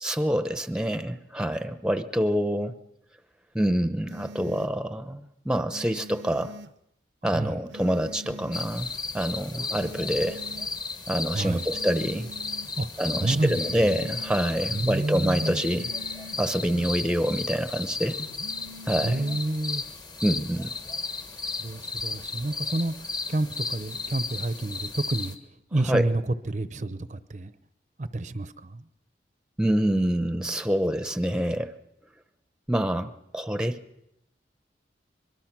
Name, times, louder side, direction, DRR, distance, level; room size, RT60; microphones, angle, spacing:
voice 1, 0.0-2.7 3.5-6.5 7.2-8.9 9.1-10.4 11.1-12.3 13.0-15.9 16.4-18.2 18.9-19.3 20.2-20.7 25.9-26.0 29.6-31.7 32.7-33.8, equal, 5° right, 10 dB, 0.9 m, -26 dB
sound 1, 4.1-4.7 5.7-6.7 7.7-8.7 9.7-10.7 11.7-12.7 13.4-14.4 15.4-16.4 18.4-19.4, equal, 80° right, 0.8 m, -44 dB
voice 2, 7.3-7.6 11.3-11.7 12.8-12.9 13.1-14.0 14.7-15.6 19.0-19.8 21.6-25.4 25.7-27.5 28.0-28.8, right 2 dB, 40° right, 12 dB, 0.7 m, -29 dB
sound 2, 8.2-8.6 9.4-9.9 11.1-11.5 12.2-14.6 15.3-15.6 16.7-17.1 17.9-18.0 18.2-18.5 19.7-20.2 20.5-20.6 20.8-21.0 21.3-21.7 22.0-23.1 23.5-23.9 24.3-25.5 25.7-25.8, equal, 45° left, 5.9 m, -47 dB
sound 3, 8.5-25.3, left 4 dB, 25° left, 1.3 m, -34 dB
23.5 x 22.5 x 6.1 m, 0.83 s
head